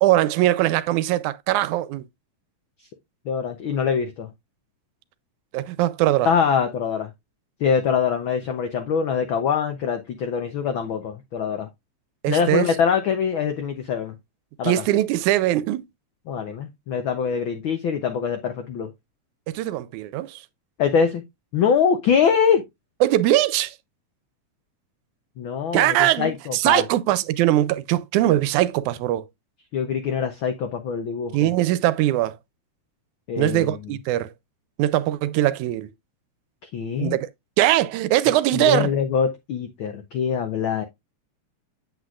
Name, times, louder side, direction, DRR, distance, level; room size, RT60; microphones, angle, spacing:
voice 1, 0.0-2.1 5.5-6.3 12.2-12.7 14.6-15.9 19.5-20.4 23.0-23.7 25.7-29.2 31.3-32.4 33.4-34.3 34.8-35.9 37.0-37.2 37.6-38.9, right 14 dB, 90° right, 2.0 m, -21 dB
voice 2, 3.3-4.3 6.2-7.1 7.6-11.7 12.3-14.2 14.6-14.7 16.3-18.9 20.8-21.2 21.5-22.6 25.4-26.8 29.7-31.5 33.3-33.8 36.6-37.2 38.5-40.8, left 6 dB, 85° left, 1.1 m, -23 dB
8.1 x 7.9 x 2.4 m
omnidirectional pair, 3.4 m